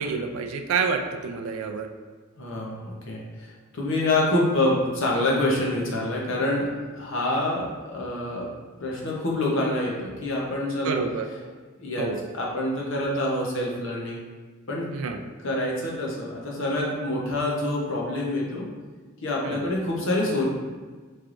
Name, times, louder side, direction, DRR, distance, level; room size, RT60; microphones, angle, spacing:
voice 1, 0.0-1.9 10.8-11.3 12.0-12.2 14.9-15.2 19.4-19.6, right 5 dB, 70° right, 4 dB, 0.4 m, -28 dB
voice 2, 2.4-6.7 6.9-8.5 8.8-11.0 11.8-12.1 12.3-14.2 14.7-14.9 15.4-18.7 19.2-20.5, left 1 dB, 60° left, -3 dB, 0.8 m, -26 dB
4.5 x 3.2 x 2.5 m, 1.4 s
head